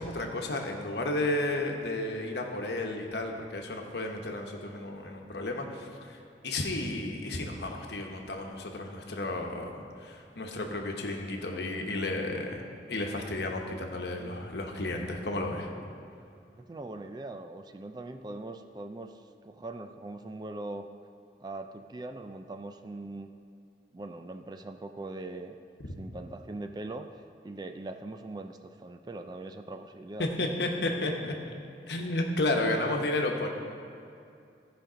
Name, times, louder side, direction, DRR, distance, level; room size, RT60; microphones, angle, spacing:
voice 1, 0.0-6.2 6.4-12.6 12.9-15.7 30.2-31.3 31.9-33.5, left 2 dB, 70° left, 2 dB, 1.1 m, -32 dB
voice 2, 16.6-20.9 21.4-23.3 23.9-25.6 26.0-27.1 27.4-30.3, right 2 dB, 25° right, 7 dB, 0.3 m, -41 dB
14.5 x 5.1 x 5.0 m, 2.5 s
head